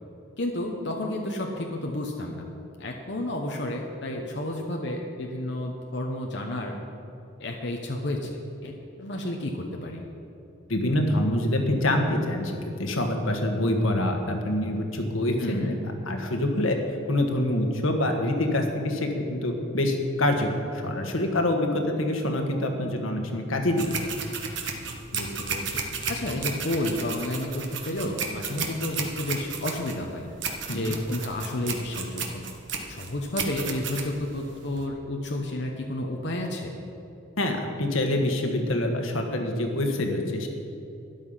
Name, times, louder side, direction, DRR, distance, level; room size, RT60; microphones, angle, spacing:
voice 1, 0.4-2.5 2.8-6.8 7.4-8.3 8.6-10.0 15.4-15.7 25.1-25.8 26.1-30.3 30.7-32.4 32.9-36.8, left 1 dB, 60° left, 1 dB, 1.1 m, -31 dB
voice 2, 10.7-12.5 12.8-15.6 16.1-16.8 17.1-24.0 30.7-30.9 37.4-40.5, left 1 dB, 90° left, 3 dB, 1.6 m, -25 dB
sound 1, 23.8-34.9, right 5 dB, 65° right, 1.3 m, -33 dB
13.0 x 10.5 x 5.7 m, 2.9 s
head